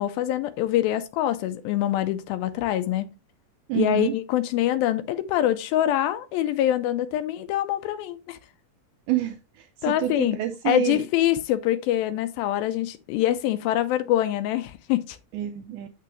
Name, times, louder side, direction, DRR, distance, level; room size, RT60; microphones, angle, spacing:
voice 1, 0.0-3.1 3.7-8.4 9.8-10.4 10.7-15.2, left 13 dB, 90° left, 2.4 m, -25 dB
voice 2, 3.7-4.1 9.1-11.0 15.3-15.9, right 13 dB, 85° right, 1.8 m, -28 dB
6.8 x 6.1 x 2.9 m
omnidirectional pair, 4.1 m